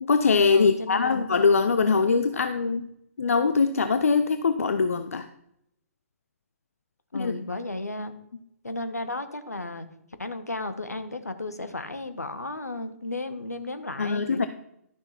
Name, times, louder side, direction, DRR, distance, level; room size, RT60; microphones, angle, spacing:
voice 1, 0.0-2.9 3.2-5.3 7.1-7.3 14.0-14.5, left 5 dB, 65° left, 10 dB, 0.5 m, -22 dB
voice 2, 0.5-1.3 7.1-8.1 8.6-9.9 10.2-14.5, left 2 dB, 80° left, 9 dB, 1.1 m, -34 dB
12.0 x 6.3 x 4.3 m, 0.78 s
figure-of-eight pair, 125°, 8 cm